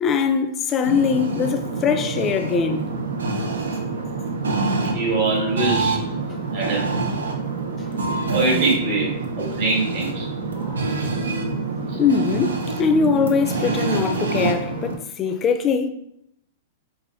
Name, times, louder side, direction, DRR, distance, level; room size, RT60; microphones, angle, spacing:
voice 1, 0.0-2.9 12.0-15.9, left 5 dB, 30° left, 0.4 m, -21 dB
sound 1, 0.8-15.0, right 3 dB, 85° right, 0.5 m, -26 dB
voice 2, 4.8-6.0 6.5-6.9 8.3-10.3 10.5-10.8 11.9-12.0, right 3 dB, 55° right, 1.4 m, -23 dB
4.8 x 2.6 x 2.6 m
hypercardioid pair, 110°, 0 cm